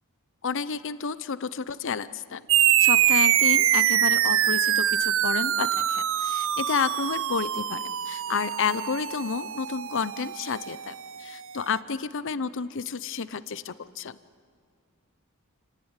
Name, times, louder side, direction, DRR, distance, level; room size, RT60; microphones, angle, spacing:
voice 1, 0.4-14.2, left 6 dB, 60° left, 16 dB, 0.7 m, -31 dB
sound 1, 2.5-11.4, right 11 dB, 65° right, 0.8 m, -24 dB
29.0 x 18.0 x 9.8 m, 2.2 s
head